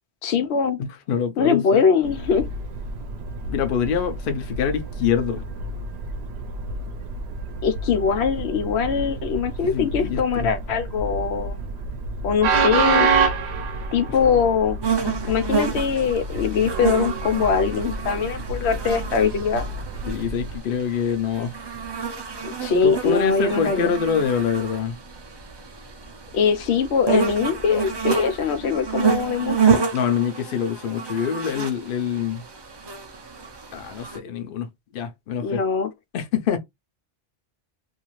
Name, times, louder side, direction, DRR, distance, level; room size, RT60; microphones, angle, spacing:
voice 1, 0.2-0.8 1.4-2.4 7.6-11.6 12.2-13.1 13.9-14.8 15.3-19.6 22.4-23.9 26.3-29.8 35.4-35.9, left 6 dB, 90° left, 0.9 m, -22 dB
voice 2, 0.8-1.8 3.5-5.4 9.6-10.5 15.0-15.1 20.1-21.6 22.8-25.0 29.9-32.4 33.7-35.6 36.1-36.6, left 7 dB, 60° left, 0.7 m, -25 dB
Train, 2.0-20.6, right 4 dB, 75° right, 0.8 m, -28 dB
sound 1, 14.8-34.2, right 6 dB, 35° right, 0.4 m, -29 dB
2.6 x 2.4 x 3.0 m
omnidirectional pair, 1.1 m